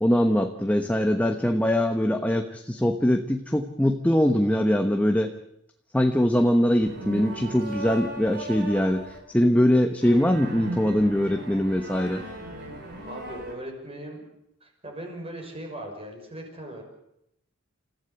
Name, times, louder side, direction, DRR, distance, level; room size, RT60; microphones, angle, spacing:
voice 1, 0.0-5.3 5.9-12.2, equal, 5° left, 5 dB, 1.1 m, -22 dB
sound 1, 6.8-9.2 10.0-13.5, right 1 dB, 55° right, 7.0 m, -37 dB
voice 2, 13.1-14.3 14.6-16.8, right 1 dB, 30° right, 2 dB, 6.2 m, -39 dB
28.5 x 15.0 x 8.2 m, 0.79 s
head